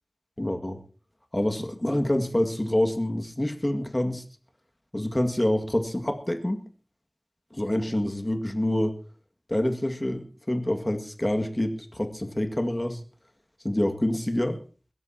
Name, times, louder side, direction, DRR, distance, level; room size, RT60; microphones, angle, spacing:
voice 1, 0.4-0.8 1.3-4.2 4.9-6.6 7.5-9.0 9.5-13.0 13.6-14.6, left 1 dB, 30° left, 6 dB, 2.0 m, -27 dB
21.5 x 16.5 x 2.9 m, 0.37 s
wide cardioid pair, 45°, 0 cm